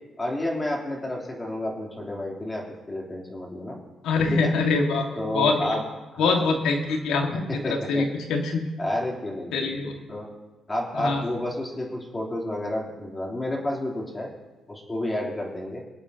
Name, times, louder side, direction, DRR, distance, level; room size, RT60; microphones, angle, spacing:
voice 1, 0.2-3.8 4.3-4.5 5.2-5.8 6.1-6.5 7.5-8.0 8.8-10.3 10.7-14.3 14.7-15.8, left 1 dB, 20° left, -2 dB, 3.2 m, -30 dB
voice 2, 4.0-5.1 5.3-5.8 6.2-7.4 7.9-8.0 8.3-8.6 9.5-9.9 10.9-11.2, left 4 dB, 85° left, 3 dB, 1.7 m, -23 dB
25.0 x 8.5 x 2.8 m, 1.1 s
cardioid pair, 90°, 0 cm